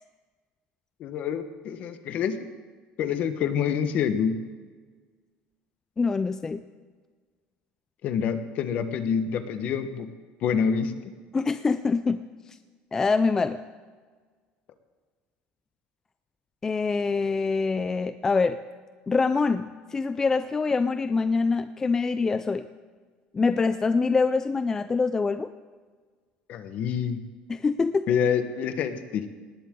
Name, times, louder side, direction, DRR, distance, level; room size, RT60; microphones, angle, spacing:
voice 1, 1.0-2.4 3.0-4.4 8.0-10.1 10.4-10.9 26.5-27.2 28.1-29.3, left 7 dB, 50° left, 9 dB, 1.3 m, -27 dB
voice 2, 6.0-6.6 11.3-12.2 12.9-13.6 16.6-18.6 19.1-22.7 23.3-25.5 27.5-28.1, left 4 dB, 15° left, 11 dB, 0.4 m, -25 dB
19.0 x 18.5 x 3.8 m, 1.5 s
cardioid pair, 150°, 3 cm